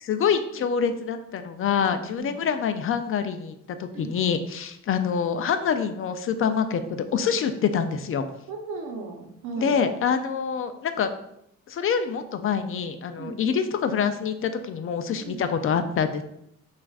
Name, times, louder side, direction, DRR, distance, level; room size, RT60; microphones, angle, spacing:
voice 1, 0.0-3.5 3.8-8.2 9.6-11.1 11.7-16.2, left 6 dB, 45° left, 9 dB, 0.4 m, -26 dB
voice 2, 8.5-9.8 13.2-13.3 15.2-15.4, right 4 dB, 80° right, 3 dB, 0.8 m, -36 dB
5.9 x 2.5 x 2.3 m, 0.78 s
cardioid pair, 90°, 30 cm